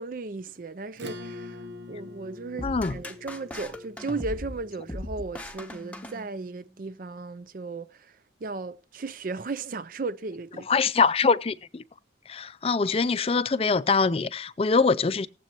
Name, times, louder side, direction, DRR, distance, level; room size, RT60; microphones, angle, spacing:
voice 1, 0.0-10.7, right 3 dB, 45° right, 0.5 m, -36 dB
Acoustic guitar / Strum, 0.9-5.9, left 2 dB, 70° right, 1.1 m, -44 dB
voice 2, 2.6-3.0 10.7-11.8 12.3-15.3, left 4 dB, 30° left, 0.4 m, -23 dB
sound 1, 2.6-6.7, left 1 dB, 10° left, 0.9 m, -39 dB
19.5 x 7.7 x 3.0 m
head